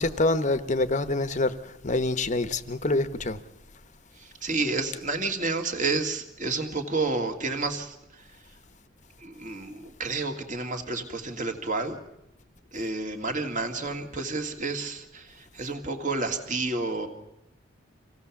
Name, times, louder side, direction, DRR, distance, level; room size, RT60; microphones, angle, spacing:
voice 1, 0.0-3.4, left 2 dB, 35° left, 0.9 m, -26 dB
voice 2, 4.2-8.3 9.2-12.0 12.7-17.1, right 3 dB, 40° right, 2.0 m, -30 dB
25.5 x 16.5 x 7.1 m
head